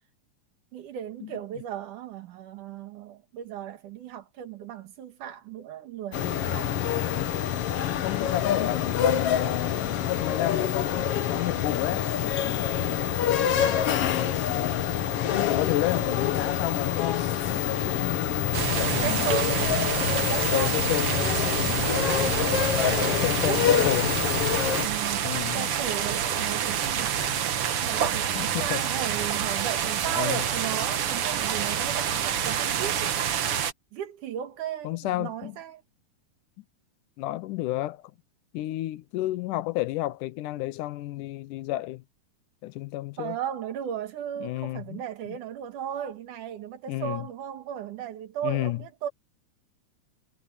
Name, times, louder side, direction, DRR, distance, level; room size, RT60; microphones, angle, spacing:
voice 1, 0.7-6.8 19.0-19.7 20.3-20.8 22.7-24.0 24.8-33.1 33.9-35.8 43.2-49.1, right 9 dB, 80° right, 3.2 m, -35 dB
sound 1, 6.1-24.9, left 10 dB, 60° left, 1.9 m, -26 dB
voice 2, 8.0-13.1 13.7-14.9 15.5-19.4 20.5-21.3 21.6-22.0 23.1-24.1 25.2-25.7 28.4-28.8 30.1-30.4 34.8-35.6 37.2-38.0 38.5-42.0 42.6-43.4 44.4-45.4 46.9-47.3 48.4-48.8, left 16 dB, 85° left, 2.3 m, -31 dB
sound 2, 18.5-33.7, right 9 dB, 55° right, 1.8 m, -28 dB
omnidirectional pair, 3.6 m